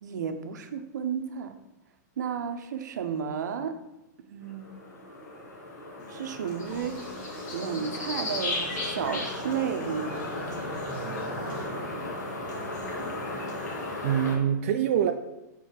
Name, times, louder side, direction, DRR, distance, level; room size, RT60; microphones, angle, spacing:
voice 1, 0.0-1.6 2.2-3.8 4.2-4.7 6.1-7.1 7.5-10.3, right 7 dB, 80° right, 8 dB, 0.7 m, -32 dB
sound 1, 4.4-14.4, left 2 dB, 65° left, 1.7 m, -35 dB
Human voice, 6.0-14.0, left 1 dB, 85° left, 1.7 m, -48 dB
sound 2, 6.6-11.7, left 1 dB, 40° left, 2.0 m, -50 dB
voice 2, 11.0-11.6 14.0-15.1, right 9 dB, 45° right, 5 dB, 0.4 m, -26 dB
7.5 x 3.9 x 4.5 m, 0.94 s
supercardioid pair, 180°, 10 cm